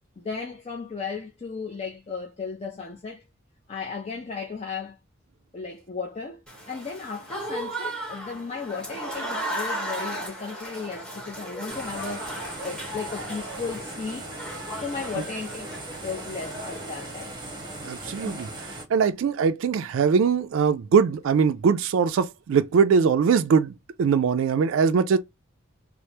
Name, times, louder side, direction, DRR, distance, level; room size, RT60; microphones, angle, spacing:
voice 1, 0.2-3.2 3.7-5.0 5.5-14.3 14.8-17.3 18.2-18.4, left 5 dB, 30° left, 0.5 m, -35 dB
Applause / Crowd, 6.5-17.3, right 1 dB, 5° left, 1.0 m, -36 dB
sound 1, 11.7-18.8, right 1 dB, 20° right, 0.8 m, -39 dB
voice 2, 17.8-18.5 18.9-25.2, right 6 dB, 70° right, 0.3 m, -21 dB
3.2 x 2.0 x 2.8 m
head